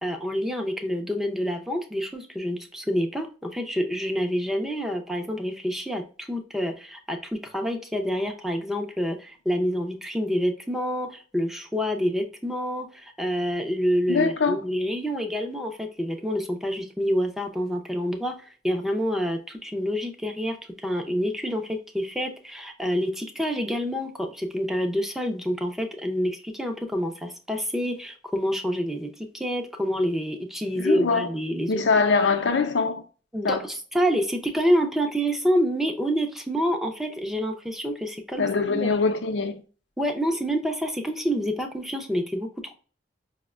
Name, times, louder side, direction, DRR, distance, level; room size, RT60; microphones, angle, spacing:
voice 1, 0.0-20.6 20.8-31.8 33.3-39.0 40.0-42.8, equal, ahead, 0.5 m, -27 dB
voice 2, 14.1-14.6 30.8-31.3 31.7-33.0 33.4-33.6 38.4-39.6, left 4 dB, 75° left, 0.6 m, -23 dB
5.2 x 2.1 x 2.3 m
head